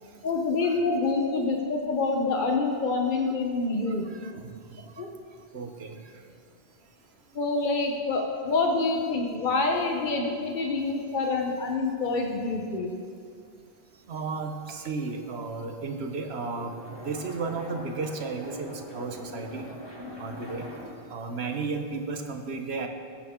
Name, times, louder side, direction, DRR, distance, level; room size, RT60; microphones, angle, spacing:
voice 1, 0.2-4.0 5.0-5.1 7.3-12.9, left 3 dB, 50° left, 2 dB, 1.1 m, -26 dB
voice 2, 3.8-5.1 5.5-6.4 14.1-19.7 20.2-20.7 21.1-22.9, right 4 dB, 85° right, 5 dB, 1.2 m, -34 dB
sound 1, 16.4-21.1, left 1 dB, 25° right, 1.6 m, -42 dB
17.0 x 8.7 x 3.7 m, 2.3 s
omnidirectional pair, 1.1 m